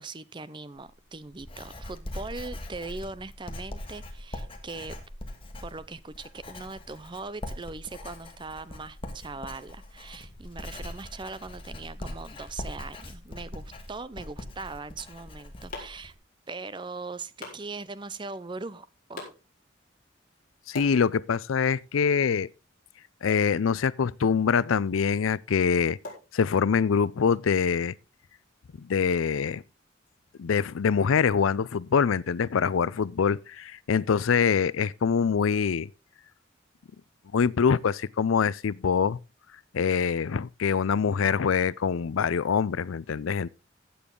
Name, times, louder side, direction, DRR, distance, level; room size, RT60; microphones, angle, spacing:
voice 1, 0.0-5.0 5.6-16.1 16.5-19.3, right 3 dB, 25° right, 0.6 m, -40 dB
Writing, 0.8-16.1, left 1 dB, 25° left, 1.6 m, -41 dB
sound 1, 15.0-27.0, left 2 dB, 45° left, 4.6 m, -49 dB
voice 2, 20.7-22.5 23.2-26.0 26.3-27.9 28.8-29.6 30.4-35.9 37.3-39.2 39.7-43.5, left 6 dB, 90° left, 0.5 m, -24 dB
15.5 x 7.0 x 3.8 m
head